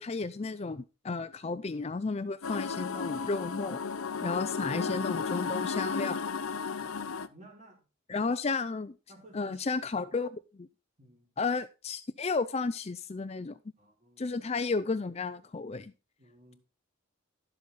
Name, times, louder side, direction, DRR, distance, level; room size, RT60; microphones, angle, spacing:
voice 1, 0.0-3.8 4.2-6.2 8.1-9.0 9.3-10.7 11.4-13.6 14.2-15.9, left 4 dB, 30° left, 0.4 m, -33 dB
sound 1, 2.4-7.3, left 5 dB, 80° left, 0.7 m, -34 dB
voice 2, 6.7-7.8 8.1-8.3 9.1-9.7 9.9-10.1 11.0-11.3 13.8-14.4 16.2-16.6, right 1 dB, 35° right, 3.9 m, -56 dB
12.0 x 7.5 x 4.1 m
head